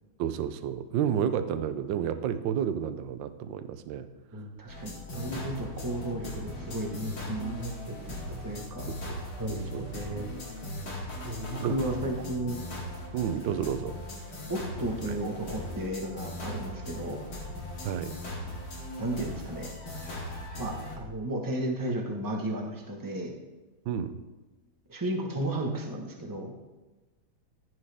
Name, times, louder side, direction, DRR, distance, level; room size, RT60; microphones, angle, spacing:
voice 1, 0.2-4.1 8.9-9.2 9.5-9.9 11.6-11.7 13.1-13.9 17.8-18.2 23.9-24.2, right 9 dB, 75° right, 11 dB, 1.3 m, -31 dB
voice 2, 4.3-8.9 9.4-10.3 11.2-12.6 13.4-13.7 14.5-17.2 19.0-19.7 20.6-23.3 24.9-26.5, right 1 dB, 15° right, 1 dB, 1.0 m, -34 dB
sound 1, 4.7-21.0, left 1 dB, 65° left, 3.1 m, -39 dB
15.0 x 6.2 x 3.5 m, 1.2 s
omnidirectional pair, 2.2 m